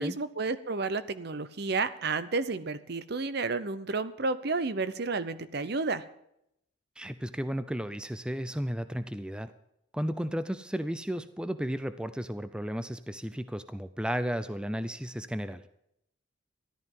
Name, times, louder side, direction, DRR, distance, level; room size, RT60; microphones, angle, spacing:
voice 1, 0.0-6.0, right 3 dB, 55° right, 14 dB, 0.8 m, -31 dB
voice 2, 7.0-9.5 9.9-15.7, equal, 5° right, 12 dB, 0.5 m, -34 dB
13.5 x 12.0 x 5.5 m, 0.77 s
head